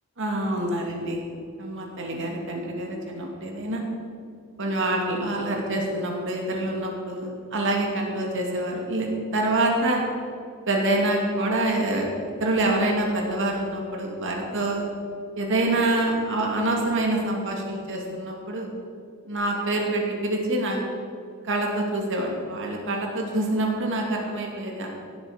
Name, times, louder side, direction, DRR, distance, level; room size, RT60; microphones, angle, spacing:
voice 1, 0.2-1.2 1.6-3.8 4.6-10.0 10.7-12.1 12.4-14.8 15.4-18.7 19.3-20.8 21.4-24.9, right 1 dB, 60° right, 0 dB, 2.4 m, -26 dB
17.0 x 8.1 x 5.1 m, 2.3 s
head